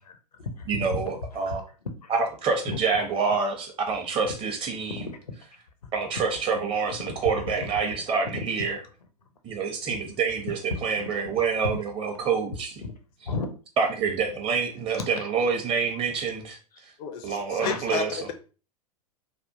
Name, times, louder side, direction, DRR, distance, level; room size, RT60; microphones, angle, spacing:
voice 1, 0.0-1.1 2.0-2.1 2.7-2.8 4.9-5.4 5.8-6.2 6.9-7.2 7.5-7.9 8.3-8.4 8.8-8.9 9.9-10.0 12.8-12.9 13.2-13.5 15.0-15.3 17.6-17.9, left 4 dB, 85° left, 7 dB, 0.7 m, -35 dB
voice 2, 0.7-1.6 2.1-5.0 5.9-8.8 9.4-12.7 13.8-16.6 16.8-16.9 17.2-18.2, right 5 dB, 25° right, 4 dB, 0.8 m, -27 dB
voice 3, 17.0-18.3, left 7 dB, 40° left, 7 dB, 0.4 m, -32 dB
3.4 x 2.2 x 2.6 m, 0.35 s
figure-of-eight pair, 100°, 20 cm